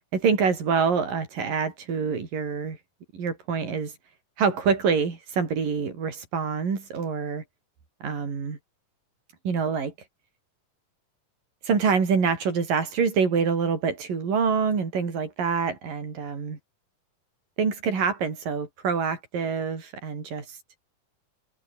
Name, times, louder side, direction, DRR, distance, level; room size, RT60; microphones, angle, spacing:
voice 1, 0.1-2.8 3.1-3.9 4.4-7.4 8.0-8.6 9.4-9.9 11.6-16.6 17.6-20.6, right 5 dB, 85° right, 6.4 m, -26 dB
omnidirectional pair, 3.8 m